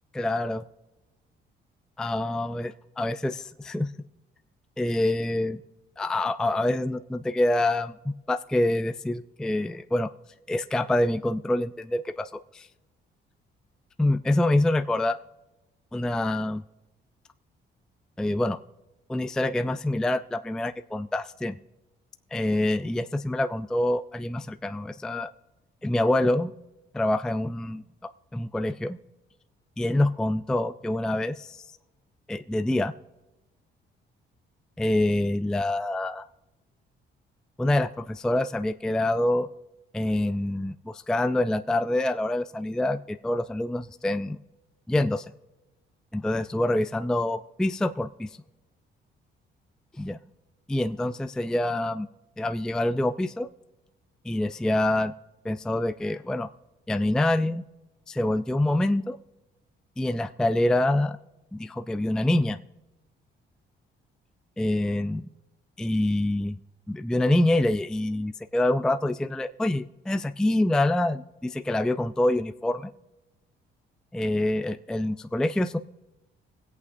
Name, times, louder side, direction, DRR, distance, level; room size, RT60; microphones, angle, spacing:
voice 1, 0.1-0.6 2.0-3.9 4.8-5.6 6.0-7.9 8.3-10.1 10.5-12.7 14.0-15.2 15.9-16.6 18.2-18.6 19.1-21.6 22.3-25.3 25.8-26.5 26.9-29.0 29.8-31.6 32.3-32.9 34.8-36.2 37.6-39.5 39.9-44.4 44.9-45.3 46.1-48.3 50.0-50.2 50.7-52.1 52.4-53.5 54.2-55.1 55.4-56.5 56.9-57.6 58.1-59.2 60.0-61.2 61.5-62.6 64.6-65.2 65.8-66.6 66.9-72.9 74.1-75.8, left 1 dB, 5° left, 9 dB, 0.3 m, -26 dB
25.0 x 8.4 x 2.6 m, 1.0 s
cardioid pair, 90°, 20 cm